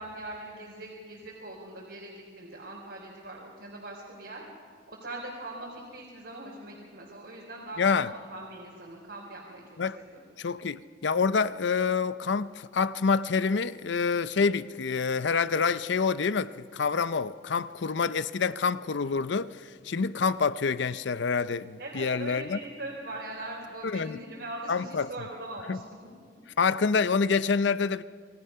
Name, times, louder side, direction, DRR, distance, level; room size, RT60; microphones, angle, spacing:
voice 1, 0.0-4.4 4.9-9.6 9.9-10.2 21.8-26.1, right 2 dB, 70° right, 3.8 m, -41 dB
voice 2, 7.8-8.1 9.8-10.0 10.4-22.6 23.8-24.2 24.7-25.1 25.7-25.8 26.6-28.0, left 5 dB, 75° left, 0.5 m, -27 dB
28.0 x 20.5 x 5.6 m
head